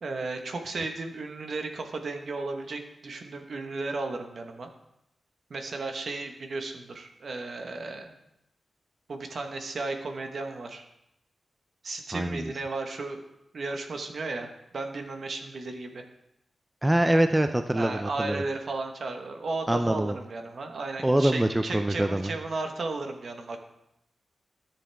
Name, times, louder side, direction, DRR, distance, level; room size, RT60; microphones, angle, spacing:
voice 1, 0.0-4.7 5.5-8.1 9.1-10.8 11.8-13.2 13.5-14.5 14.7-16.0 17.7-23.6, right 3 dB, 55° right, 5 dB, 1.1 m, -34 dB
voice 2, 12.1-12.5 16.8-18.4 19.7-20.2 21.0-22.3, right 1 dB, 10° right, 8 dB, 0.4 m, -24 dB
13.0 x 7.1 x 3.5 m, 0.84 s
wide cardioid pair, 135°, 0 cm